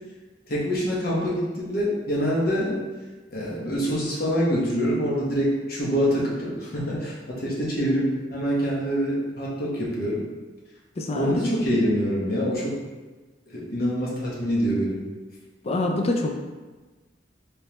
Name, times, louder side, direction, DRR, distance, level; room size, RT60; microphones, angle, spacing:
voice 1, 0.5-2.8 3.3-10.2 11.1-12.8 13.5-15.0, equal, 55° left, -5 dB, 1.0 m, -25 dB
voice 2, 11.0-11.4 15.6-16.3, left 2 dB, 35° left, 2 dB, 0.4 m, -25 dB
3.2 x 3.2 x 2.9 m, 1.3 s
head